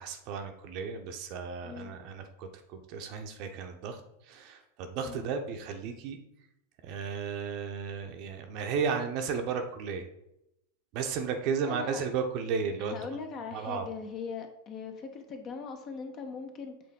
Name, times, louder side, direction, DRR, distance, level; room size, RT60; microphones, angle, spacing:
voice 1, 0.0-6.2 6.8-10.1 10.9-13.0 13.5-13.9, right 6 dB, 40° right, 5 dB, 0.8 m, -34 dB
voice 2, 1.6-2.0 5.0-5.3 11.7-12.0 12.8-16.8, left 5 dB, 30° left, 5 dB, 0.9 m, -40 dB
7.7 x 3.7 x 3.7 m, 0.83 s
figure-of-eight pair, 90°, 0 cm